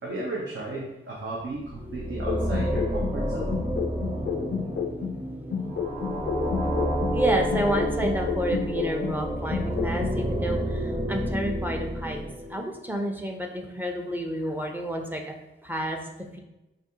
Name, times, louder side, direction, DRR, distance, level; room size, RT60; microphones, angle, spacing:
voice 1, 0.0-3.7, right 2 dB, 65° right, -4 dB, 0.8 m, -34 dB
sound 1, 1.5-12.8, right 1 dB, 25° right, 1.3 m, -29 dB
sound 2, 2.3-5.2 5.5-9.2 9.5-10.2, left 6 dB, 60° left, 0.5 m, -31 dB
voice 2, 7.1-15.3 15.6-16.0 16.3-16.4, equal, 10° right, 2 dB, 0.6 m, -30 dB
5.1 x 2.6 x 2.8 m, 0.95 s
wide cardioid pair, 85°, 21 cm